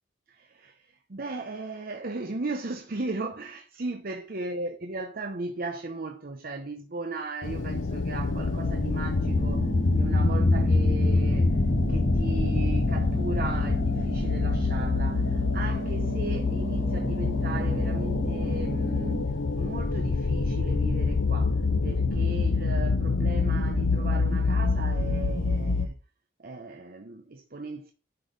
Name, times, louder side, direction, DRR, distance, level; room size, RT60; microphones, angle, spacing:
voice 1, 0.3-11.6 11.9-25.9 26.4-27.9, right 3 dB, 50° right, 0.8 m, -37 dB
sound 1, 7.4-25.9, left 3 dB, 85° left, 0.8 m, -25 dB
sound 2, 9.2-19.3, right 1 dB, 25° right, 1.0 m, -34 dB
10.0 x 4.1 x 5.2 m
head